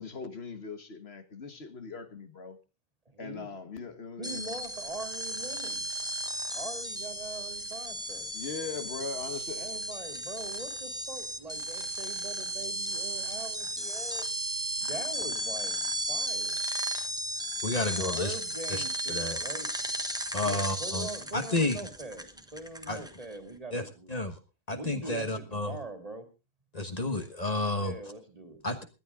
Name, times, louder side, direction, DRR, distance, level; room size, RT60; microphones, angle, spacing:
voice 1, 0.0-2.6 3.2-4.5 8.3-9.7, left 5 dB, 70° left, 1.7 m, -40 dB
voice 2, 3.1-3.5 4.2-5.9 6.5-8.3 9.6-14.3 14.8-16.6 17.9-19.7 20.4-24.1 24.8-26.3 27.8-28.8, right 2 dB, 35° right, 2.4 m, -42 dB
sound 1, 4.2-23.4, right 1 dB, 5° right, 1.3 m, -35 dB
voice 3, 17.6-18.3 18.7-18.8 19.1-19.4 20.3-21.1 21.3-21.8 22.9-23.0 23.7-24.4 24.7-25.8 26.7-28.0 28.6-28.8, left 2 dB, 35° left, 1.5 m, -31 dB
19.0 x 11.5 x 3.7 m
omnidirectional pair, 1.1 m